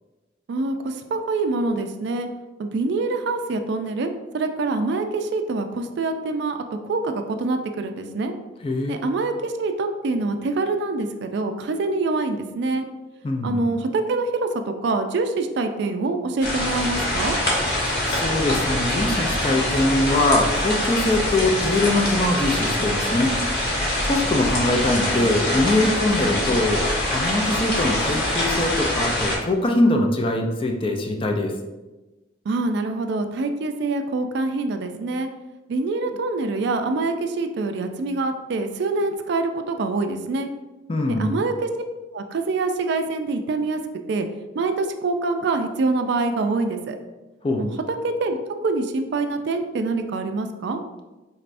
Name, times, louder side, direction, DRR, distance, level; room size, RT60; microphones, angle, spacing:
voice 1, 0.5-2.3 2.6-6.6 6.8-8.3 8.9-12.9 13.4-17.4 32.5-35.3 35.7-40.5 41.2-41.7 42.1-43.8 44.1-44.3 44.5-47.0 47.6-47.7 48.0-48.4 48.6-50.8, right 3 dB, 60° right, 7 dB, 0.3 m, -25 dB
voice 2, 8.6-9.0 13.2-13.6 17.8-23.6 24.0-31.5 40.9-41.4 47.4-47.7, left 2 dB, 30° left, 3 dB, 0.4 m, -22 dB
sound 1, 16.4-29.4, left 1 dB, 60° left, 1.2 m, -24 dB
4.2 x 3.3 x 2.5 m, 1.1 s
head